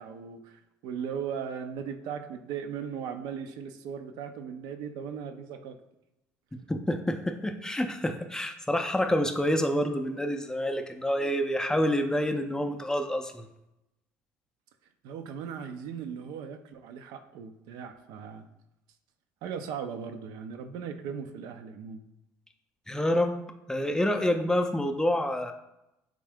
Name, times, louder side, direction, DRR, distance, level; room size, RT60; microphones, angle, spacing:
voice 1, 0.0-5.8 15.0-18.5 19.4-22.0, right 7 dB, 65° right, 7 dB, 0.4 m, -38 dB
voice 2, 6.7-13.5 22.9-23.4 23.7-25.5, left 1 dB, 10° left, 5 dB, 0.4 m, -27 dB
3.6 x 2.6 x 3.4 m, 0.88 s
supercardioid pair, 80°, 8 cm